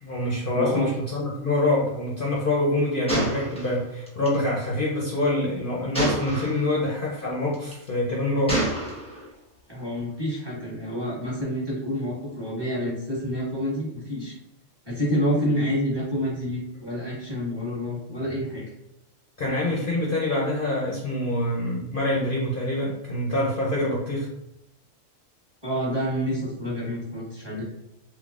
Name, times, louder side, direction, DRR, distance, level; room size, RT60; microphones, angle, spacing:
voice 1, 0.0-8.6 19.4-24.3, left 1 dB, 50° left, -4 dB, 0.7 m, -25 dB
voice 2, 0.5-0.9 9.7-14.3 14.8-18.6 25.6-27.6, equal, 20° right, -7 dB, 1.2 m, -28 dB
Gunshot gunfire, 3.1-4.4 5.9-6.7 7.5-7.9 8.5-9.3, right 1 dB, 5° left, 0.9 m, -28 dB
3.6 x 3.0 x 2.4 m, 0.87 s
omnidirectional pair, 1.3 m